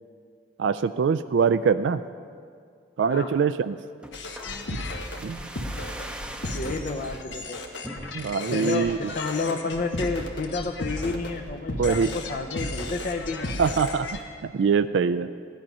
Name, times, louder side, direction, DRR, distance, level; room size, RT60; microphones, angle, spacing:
voice 1, 0.6-2.0 3.0-3.8 5.2-5.4 8.1-9.0 11.8-12.1 13.6-14.1 14.4-15.3, right 6 dB, 85° right, 12 dB, 0.3 m, -23 dB
sound 1, 4.0-7.3 7.8-8.5 8.9-9.0 9.2-9.5 10.0-10.3 10.8-11.5 11.8-11.9, right 1 dB, 5° right, 0.6 m, -42 dB
sound 2, 4.1-14.2, left 2 dB, 80° left, 1.2 m, -34 dB
voice 2, 6.5-7.6 8.4-13.5, left 3 dB, 45° left, 2 dB, 0.6 m, -30 dB
15.5 x 10.5 x 5.4 m, 2.2 s
head